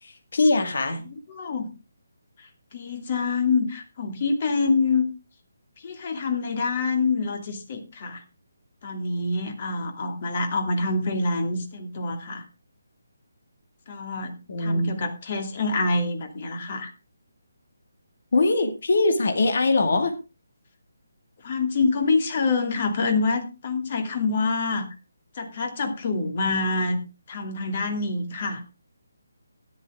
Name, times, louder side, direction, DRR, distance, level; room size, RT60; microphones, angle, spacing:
voice 1, 0.0-1.0 14.5-15.0 18.3-20.1, left 2 dB, 55° left, 7 dB, 2.3 m, -22 dB
voice 2, 1.0-1.7 2.4-5.0 5.8-8.2 8.8-12.4 13.9-16.9 21.4-24.9 25.4-27.0 27.3-28.6, left 3 dB, 40° left, 6 dB, 2.6 m, -26 dB
13.0 x 11.0 x 3.7 m, 0.29 s
figure-of-eight pair, 145°, 0 cm